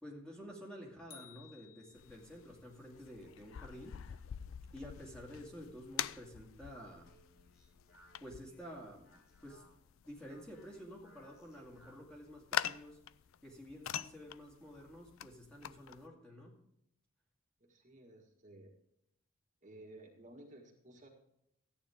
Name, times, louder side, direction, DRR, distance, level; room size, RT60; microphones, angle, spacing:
voice 1, 0.0-4.2 4.7-7.1 8.2-9.1 9.4-9.6 10.0-13.0 13.4-16.6, equal, 5° left, -2 dB, 2.2 m, -51 dB
sound 1, 1.1-2.5, left 8 dB, 40° left, 1.1 m, -58 dB
sound 2, 2.0-16.1, left 10 dB, 75° left, 0.4 m, -45 dB
Speech, 6.9-12.2, left 1 dB, 90° left, 4.8 m, -66 dB
voice 2, 17.6-18.7 19.6-21.1, right 1 dB, 35° right, 0 dB, 1.7 m, -55 dB
14.0 x 9.3 x 3.6 m, 0.78 s
head